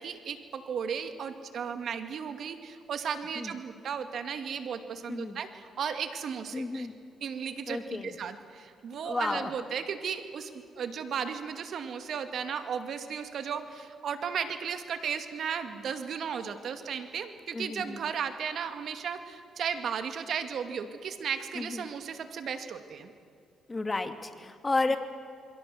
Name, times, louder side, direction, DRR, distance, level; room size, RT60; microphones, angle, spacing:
voice 1, 0.0-6.9 7.2-23.1 24.9-25.0, right 7 dB, 65° right, 8 dB, 2.3 m, -35 dB
voice 2, 6.5-6.9 7.7-8.1 9.0-9.5 17.5-18.0 21.5-21.8 23.7-25.0, left 3 dB, 25° left, 8 dB, 2.3 m, -32 dB
28.0 x 22.5 x 7.8 m, 2.3 s
cardioid pair, 90°, 0 cm